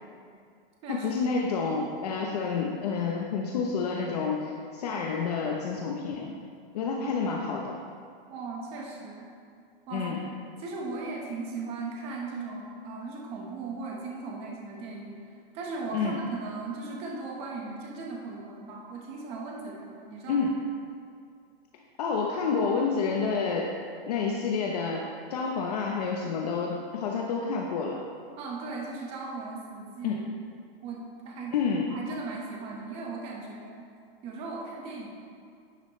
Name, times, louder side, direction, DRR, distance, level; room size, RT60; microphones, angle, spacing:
voice 1, 0.9-6.3 6.7-7.8 9.9-10.2 15.9-16.2 20.3-20.6 22.0-23.8 24.1-28.0 30.0-30.3 31.5-31.9, left 5 dB, 40° left, 0 dB, 0.9 m, -29 dB
voice 2, 8.3-9.3 9.9-10.1 10.6-15.2 15.5-20.4 28.4-30.2 30.8-31.5 31.9-33.9 34.2-35.1, right 3 dB, 20° right, -1 dB, 1.2 m, -37 dB
11.0 x 9.7 x 3.2 m, 2.3 s
hypercardioid pair, 170°, 30 cm